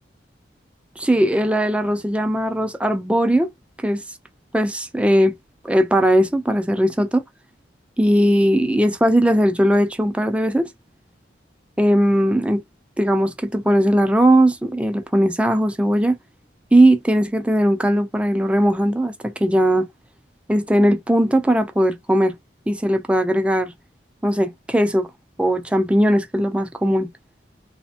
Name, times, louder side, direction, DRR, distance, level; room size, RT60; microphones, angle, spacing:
voice 1, 1.0-3.5 3.8-4.0 4.5-5.3 5.6-7.2 8.0-10.7 11.8-12.6 13.0-16.2 16.7-19.9 20.5-22.4 22.7-23.7 24.2-25.1 25.4-27.1, right 1 dB, 5° right, 0.3 m, -18 dB
3.2 x 2.1 x 2.7 m
head